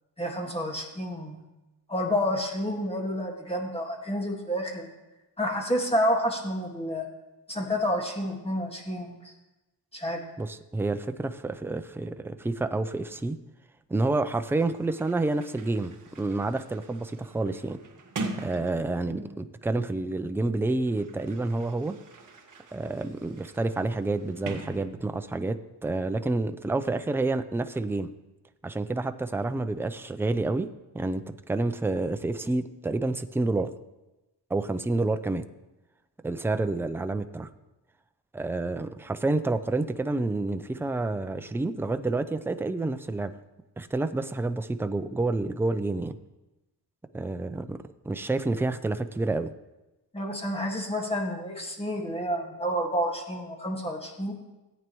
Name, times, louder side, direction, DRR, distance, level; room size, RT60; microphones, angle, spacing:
voice 1, 0.2-1.4 1.9-4.9 5.4-7.1 7.5-9.3 9.9-10.2 50.1-54.3, equal, 15° left, 1 dB, 1.8 m, -29 dB
voice 2, 10.4-13.4 13.9-17.8 18.4-22.0 22.7-28.1 28.6-33.7 34.5-35.5 36.2-37.5 38.3-43.3 43.8-46.2 47.1-49.5, right 2 dB, 5° right, 9 dB, 0.4 m, -29 dB
Sliding door, 14.5-19.5 20.4-25.4, right 3 dB, 50° right, 1.5 m, -42 dB
17.0 x 9.0 x 3.1 m, 1.0 s
wide cardioid pair, 125°, 41 cm